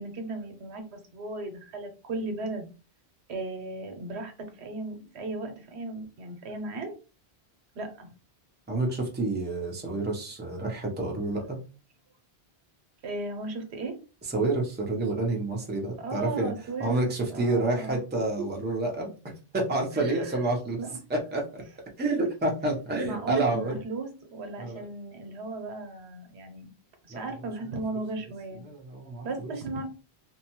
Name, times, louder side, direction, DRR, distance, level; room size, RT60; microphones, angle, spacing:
voice 1, 0.0-2.7 3.3-6.9 7.8-8.1 13.0-13.9 16.0-18.0 19.9-20.4 20.8-21.0 23.0-26.7 27.0-28.6 29.2-29.9, right 3 dB, 85° right, 5 dB, 1.0 m, -36 dB
voice 2, 8.7-11.6 14.3-16.5 16.8-19.1 19.5-20.8 21.1-21.6 22.0-23.7 24.6-24.8 27.1-27.2 27.9-28.0 28.6-29.5, right 2 dB, 15° right, 0 dB, 0.5 m, -29 dB
2.6 x 2.2 x 2.9 m, 0.34 s
omnidirectional pair, 1.1 m